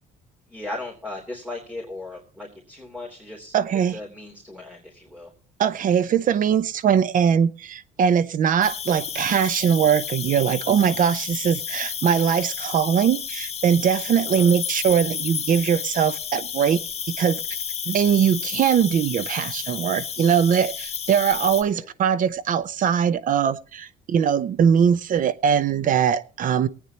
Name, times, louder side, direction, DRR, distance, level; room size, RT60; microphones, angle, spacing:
voice 1, 0.5-3.5 3.9-5.3 5.8-6.0 14.3-14.5 21.6-21.9, left 2 dB, 5° right, 3.3 m, -37 dB
voice 2, 3.5-4.0 5.6-16.8 17.2-17.4 17.9-26.7, right 8 dB, 50° right, 0.8 m, -21 dB
Cricket, 8.6-21.6, left 8 dB, 40° left, 1.7 m, -31 dB
23.5 x 9.2 x 3.0 m
cardioid pair, 110°, 17 cm